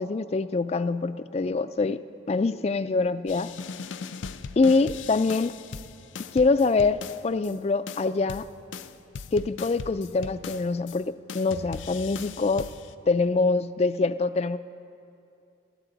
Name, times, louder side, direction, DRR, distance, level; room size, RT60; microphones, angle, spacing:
voice 1, 0.0-3.6 4.6-5.5 6.3-8.5 9.3-12.7 13.1-14.6, left 3 dB, 35° left, 14 dB, 0.3 m, -25 dB
sound 1, 3.3-7.5 7.9-11.0 11.3-12.9, left 5 dB, 85° left, 0.5 m, -39 dB
26.0 x 13.5 x 4.0 m, 2.7 s
head